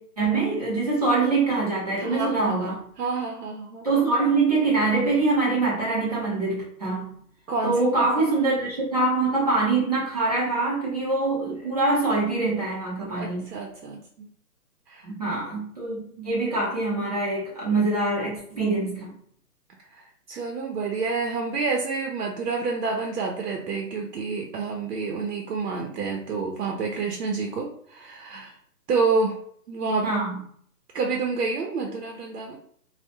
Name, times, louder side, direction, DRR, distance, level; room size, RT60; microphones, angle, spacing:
voice 1, 0.2-2.8 3.8-7.2 7.6-13.5 15.0-19.1 30.0-30.4, right 3 dB, 25° right, -7 dB, 0.5 m, -24 dB
voice 2, 2.0-3.9 7.5-8.3 13.1-14.3 14.9-15.1 19.9-28.6 28.9-29.4 29.7-30.1 30.9-32.6, right 4 dB, 80° right, 1 dB, 0.6 m, -28 dB
2.2 x 2.0 x 2.8 m, 0.63 s
hypercardioid pair, 155°, 47 cm